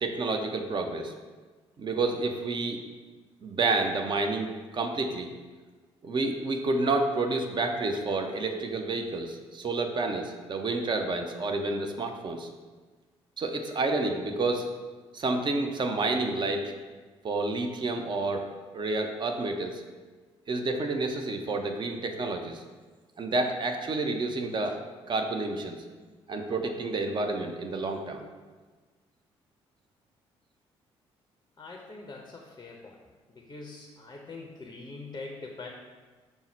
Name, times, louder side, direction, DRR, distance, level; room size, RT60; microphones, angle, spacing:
voice 1, 0.0-1.1 1.8-2.8 3.4-5.3 6.0-12.5 13.4-14.6 15.1-16.7 17.2-18.5 18.7-19.8 20.5-22.6 23.2-24.8 25.1-25.8 26.3-28.2, right 3 dB, 30° right, 4 dB, 0.5 m, -29 dB
voice 2, 31.6-33.0 33.3-35.7, left 3 dB, 25° left, 0 dB, 0.6 m, -43 dB
5.4 x 2.0 x 4.4 m, 1.4 s
figure-of-eight pair, 45°, 15 cm